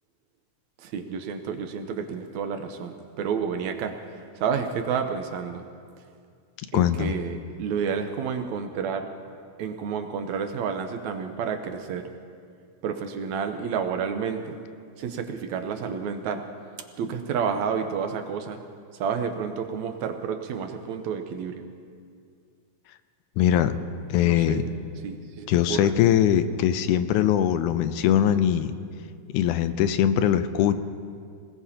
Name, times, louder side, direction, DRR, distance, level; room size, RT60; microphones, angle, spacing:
voice 1, 0.8-3.9 4.4-5.6 6.7-9.1 9.6-12.1 12.8-14.6 15.0-16.4 17.0-18.6 18.9-21.6 24.2-24.6 25.0-25.9, right 6 dB, 75° right, 6 dB, 2.1 m, -30 dB
voice 2, 6.7-7.1 23.4-23.7 24.1-24.6 25.5-28.7 29.3-30.8, left 10 dB, 85° left, 11 dB, 2.1 m, -21 dB
26.0 x 19.0 x 2.9 m, 2.3 s
omnidirectional pair, 3.5 m